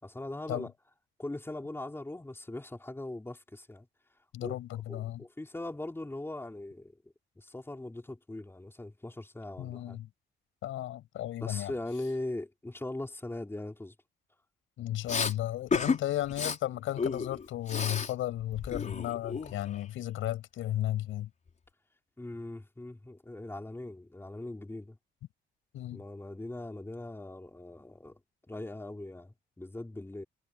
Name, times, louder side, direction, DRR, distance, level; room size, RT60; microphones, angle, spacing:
voice 1, 0.0-0.7 1.2-3.9 4.4-4.5 4.9-7.0 7.4-10.0 11.4-13.9 22.2-25.0 25.9-28.2 28.5-30.2, left 2 dB, 10° left, 4.5 m, -40 dB
voice 2, 4.3-5.2 9.6-10.1 10.6-11.7 14.8-21.3 25.7-26.0, left 13 dB, 85° left, 6.8 m, -34 dB
Respiratory sounds, 15.1-15.3 15.7-16.0 16.3-16.6 17.0-18.1 18.4-19.8, left 5 dB, 40° left, 4.7 m, -32 dB
cardioid pair, 90°, 20 cm